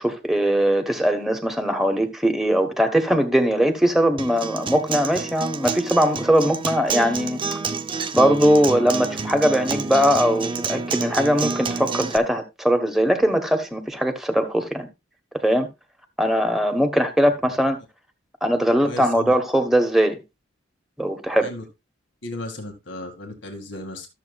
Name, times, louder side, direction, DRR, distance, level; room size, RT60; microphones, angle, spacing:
voice 1, 0.0-7.4 8.1-14.9 15.4-15.7 16.2-17.8 18.4-20.2 21.0-21.5, equal, ahead, 1.3 m, -20 dB
Acoustic guitar, 4.2-12.2, right 4 dB, 25° right, 0.6 m, -29 dB
voice 2, 18.8-19.4 21.4-21.6 22.2-24.1, left 2 dB, 65° left, 2.1 m, -35 dB
13.0 x 7.3 x 2.4 m
head